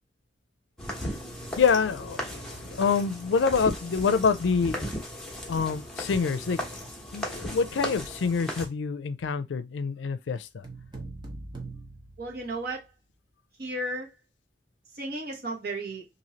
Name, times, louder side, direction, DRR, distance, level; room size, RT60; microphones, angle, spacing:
sound 1, 0.8-8.7, equal, 5° left, 0.9 m, -36 dB
voice 1, 1.6-4.9 5.5-6.6 7.1-10.6, left 5 dB, 80° left, 0.4 m, -26 dB
sound 2, 10.6-12.9, right 2 dB, 25° right, 0.9 m, -42 dB
voice 2, 12.2-12.9 13.6-14.1 14.9-16.0, right 2 dB, 60° right, 1.2 m, -34 dB
3.1 x 2.7 x 2.8 m
head